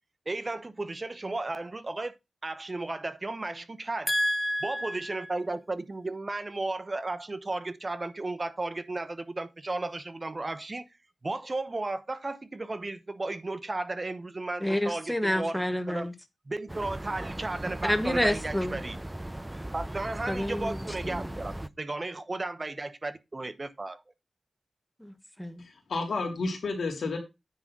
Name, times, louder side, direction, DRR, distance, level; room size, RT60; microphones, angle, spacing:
voice 1, 0.3-2.1 2.4-4.1 4.6-10.9 11.2-16.1 16.5-19.0 19.7-24.0, right 2 dB, 40° right, 1.0 m, -34 dB
voice 2, 4.1-5.2 14.6-16.1 17.8-18.8 20.3-21.3 25.0-25.6, equal, 5° left, 1.5 m, -29 dB
sound 1, 16.7-21.7, right 1 dB, 20° right, 0.6 m, -38 dB
voice 3, 25.6-27.2, left 3 dB, 90° left, 2.9 m, -31 dB
9.7 x 3.8 x 6.2 m
cardioid pair, 60°, 0 cm